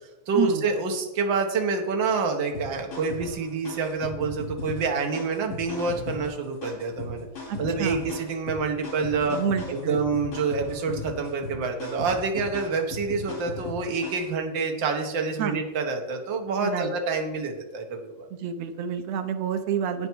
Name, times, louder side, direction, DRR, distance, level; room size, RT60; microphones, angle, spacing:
voice 1, 0.3-7.3 7.6-9.4 9.7-18.3, right 4 dB, 45° right, 3 dB, 1.7 m, -27 dB
sound 1, 2.5-14.3, left 3 dB, 80° left, 6.5 m, -37 dB
voice 2, 7.5-8.0 9.2-10.0 15.4-15.6 16.6-16.9 18.3-20.1, right 8 dB, 70° right, 7 dB, 1.8 m, -28 dB
12.5 x 8.9 x 4.7 m, 0.99 s
omnidirectional pair, 3.6 m